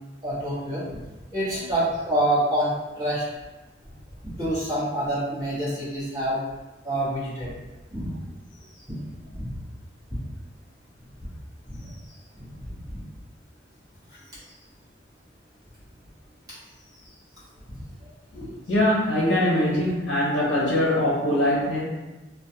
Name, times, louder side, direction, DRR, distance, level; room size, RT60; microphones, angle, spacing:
voice 1, 0.2-0.8 1.3-3.2 4.4-6.4 6.8-7.5 7.9-8.1 9.3-9.5 11.2-11.3 11.7-11.9 12.4-12.5 12.8-13.0 17.7-17.8, right 1 dB, 20° right, -11 dB, 1.0 m, -26 dB
voice 2, 18.3-21.8, left 1 dB, 75° left, -5 dB, 0.6 m, -22 dB
2.3 x 2.2 x 2.7 m, 1.1 s
head